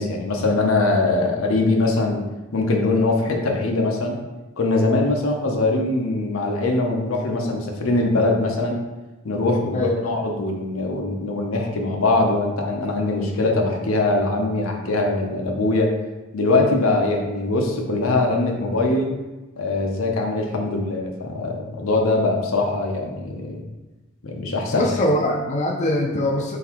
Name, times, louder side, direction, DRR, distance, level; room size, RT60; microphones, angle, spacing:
voice 1, 0.0-2.3 2.5-4.2 4.6-8.8 9.2-15.9 16.3-19.1 19.6-23.6 24.2-25.1, left 2 dB, 85° left, 1 dB, 0.6 m, -22 dB
voice 2, 24.7-26.6, left 1 dB, 35° left, 0 dB, 0.4 m, -22 dB
3.8 x 3.4 x 2.9 m, 1.1 s
head